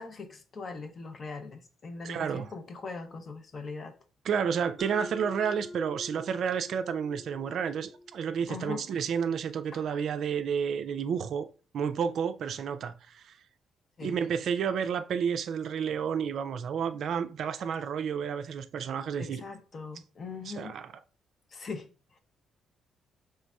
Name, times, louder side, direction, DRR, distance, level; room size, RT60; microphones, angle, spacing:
voice 1, 0.0-4.0 8.5-8.8 9.7-9.9 14.0-14.2 19.2-20.8 21.5-22.2, left 4 dB, 45° left, 0.6 m, -41 dB
voice 2, 2.0-2.5 4.2-11.5 11.7-13.4 14.0-19.4 20.6-20.8, right 7 dB, 65° right, 0.3 m, -31 dB
Mallet percussion, 4.8-9.3, left 1 dB, 5° left, 0.8 m, -46 dB
4.0 x 3.3 x 2.3 m
cardioid pair, 90°, 0 cm